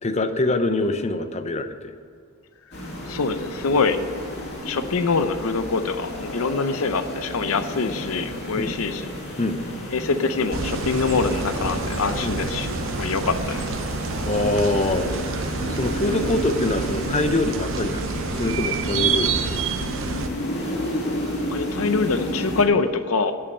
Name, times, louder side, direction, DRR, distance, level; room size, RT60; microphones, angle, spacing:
voice 1, 0.0-1.9 8.6-8.8 9.4-9.6 12.2-12.4 14.2-19.6, left 2 dB, 30° left, 9 dB, 0.7 m, -24 dB
sound 1, 2.7-22.6, left 1 dB, 55° left, 2.5 m, -31 dB
voice 2, 3.1-4.0 4.7-9.0 9.9-12.7 12.9-13.6 21.5-23.3, left 4 dB, 80° left, 10 dB, 0.6 m, -24 dB
sound 2, 10.5-20.3, right 5 dB, 65° right, 0.7 m, -28 dB
8.6 x 6.8 x 8.7 m, 2.2 s
head